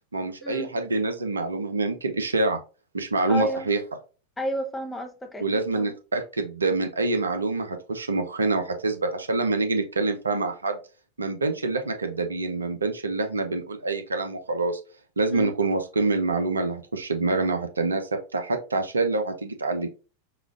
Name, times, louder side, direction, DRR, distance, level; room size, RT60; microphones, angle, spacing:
voice 1, 0.1-2.6 2.9-3.8 5.4-10.8 11.2-14.8 15.2-19.9, right 3 dB, 75° right, 0.5 m, -26 dB
voice 2, 3.3-3.7 4.4-5.4 5.7-5.9 15.3-15.5, equal, 10° left, 0.7 m, -31 dB
4.9 x 2.3 x 2.4 m
figure-of-eight pair, 90°, 0 cm